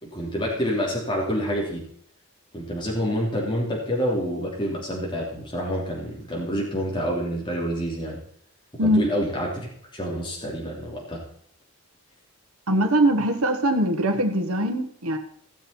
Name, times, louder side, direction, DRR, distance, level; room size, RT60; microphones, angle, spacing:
voice 1, 0.0-1.8 2.5-8.2 8.7-11.2, equal, 20° left, -3 dB, 3.1 m, -28 dB
voice 2, 12.7-15.2, right 1 dB, 90° right, 7 dB, 1.5 m, -22 dB
16.5 x 7.4 x 4.4 m, 0.63 s
head